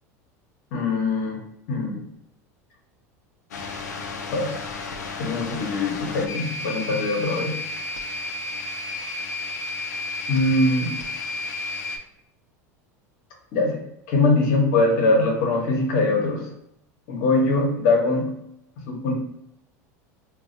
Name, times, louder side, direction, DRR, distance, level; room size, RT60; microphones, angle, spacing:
voice 1, 0.7-1.4 1.7-2.0 4.3-4.5 5.2-7.6 10.3-10.9 13.5-13.8 14.1-16.5 17.1-18.3 18.9-19.1, left 2 dB, 65° left, 0 dB, 0.9 m, -22 dB
sound 1, 3.5-12.0, left 3 dB, 90° left, 0.4 m, -32 dB
2.9 x 2.2 x 2.5 m, 0.77 s
hypercardioid pair, 90°, 9 cm